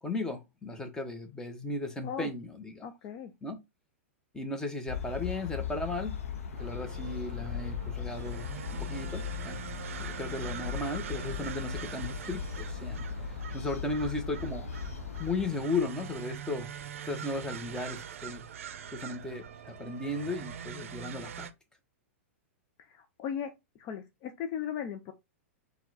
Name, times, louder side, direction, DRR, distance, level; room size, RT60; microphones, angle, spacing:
voice 1, 0.0-2.9 3.4-3.6 4.3-6.2 6.5-9.6 10.0-13.1 13.5-14.7 15.2-16.7 17.1-18.4 18.9-21.5, left 2 dB, 10° left, 1.0 m, -35 dB
voice 2, 2.8-3.3 22.9-23.5 23.8-25.1, left 8 dB, 40° left, 0.6 m, -37 dB
sound 1, 4.9-15.5, left 7 dB, 80° left, 0.8 m, -38 dB
sound 2, 6.6-21.5, right 8 dB, 75° right, 0.5 m, -43 dB
4.4 x 2.3 x 4.1 m
hypercardioid pair, 115°, 7 cm